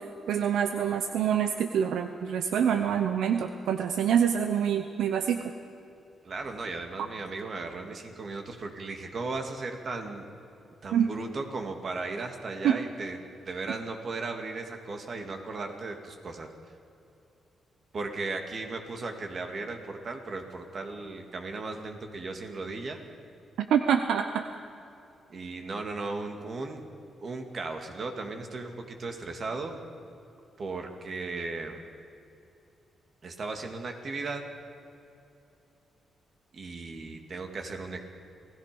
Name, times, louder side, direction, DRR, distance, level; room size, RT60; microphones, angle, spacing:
voice 1, 0.0-5.4 10.9-11.1 12.6-12.8 23.6-24.4, right 8 dB, 85° right, 7 dB, 0.8 m, -26 dB
voice 2, 6.2-10.3 10.8-13.2 13.5-16.5 17.9-23.0 25.3-26.8 27.2-29.8 30.6-31.8 33.2-34.4 36.5-38.0, right 3 dB, 50° right, 4 dB, 2.7 m, -36 dB
28.0 x 17.5 x 5.5 m, 2.7 s
cardioid pair, 80°, 0 cm